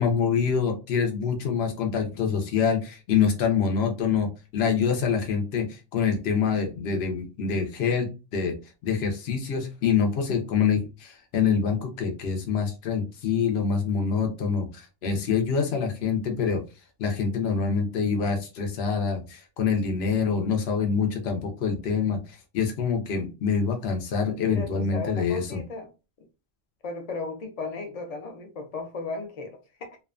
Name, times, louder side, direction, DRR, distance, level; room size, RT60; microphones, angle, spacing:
voice 1, 0.0-4.3 4.5-8.5 8.8-16.6 17.0-25.6, left 6 dB, 80° left, 0.9 m, -26 dB
voice 2, 24.4-25.9 26.2-26.3 26.8-30.0, left 3 dB, 45° left, 0.6 m, -35 dB
2.6 x 2.2 x 2.4 m
omnidirectional pair, 1.1 m